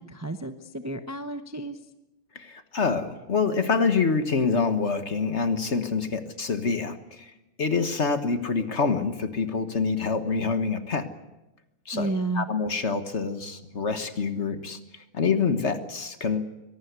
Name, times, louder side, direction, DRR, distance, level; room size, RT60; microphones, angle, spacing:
voice 1, 0.1-1.8 11.9-12.5, right 2 dB, 20° right, 8 dB, 0.4 m, -31 dB
voice 2, 2.3-7.3 7.6-11.1 11.9-16.5, left 5 dB, 40° left, 9 dB, 1.5 m, -26 dB
24.5 x 18.5 x 8.2 m, 1.0 s
omnidirectional pair, 2.1 m